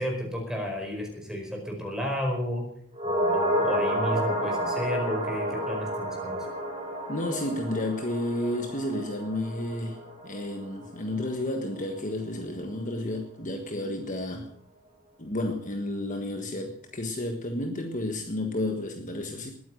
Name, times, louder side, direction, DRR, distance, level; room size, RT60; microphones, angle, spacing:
voice 1, 0.0-2.7 3.0-6.4, equal, 5° right, 1 dB, 4.9 m, -32 dB
sound 1, 3.0-11.4 11.7-11.8, equal, 30° right, 3.8 m, -30 dB
voice 2, 7.1-14.5 15.2-19.5, left 1 dB, 35° left, 4 dB, 1.5 m, -31 dB
20.0 x 9.5 x 6.6 m, 0.64 s
head